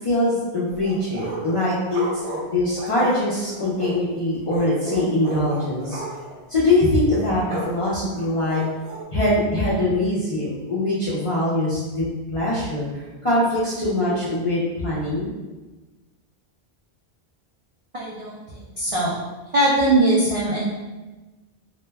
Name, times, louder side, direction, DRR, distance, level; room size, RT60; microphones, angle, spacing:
voice 1, 0.0-6.0 6.5-8.6 9.1-12.0 12.3-15.3, left 1 dB, 45° left, -7 dB, 0.4 m, -23 dB
sound 1, 0.7-1.5 1.9-4.1 4.5-6.4 6.6-6.7 7.1-7.7 8.1-9.0, right 2 dB, 80° right, 0.8 m, -33 dB
voice 2, 17.9-18.4 18.8-19.2 19.5-20.6, right 2 dB, 60° right, -7 dB, 0.3 m, -20 dB
2.2 x 2.1 x 3.3 m, 1.2 s
omnidirectional pair, 1.1 m